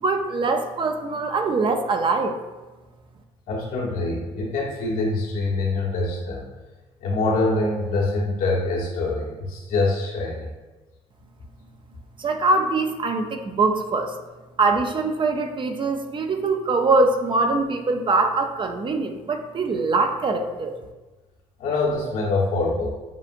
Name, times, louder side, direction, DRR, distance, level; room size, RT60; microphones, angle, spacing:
voice 1, 0.0-2.4 12.2-14.1 14.6-20.7, right 3 dB, 35° right, 6 dB, 0.5 m, -23 dB
voice 2, 3.5-6.4 7.0-10.5 21.6-22.9, left 2 dB, 80° left, -3 dB, 1.3 m, -24 dB
7.3 x 2.4 x 2.6 m, 1.2 s
supercardioid pair, 70°, 14 cm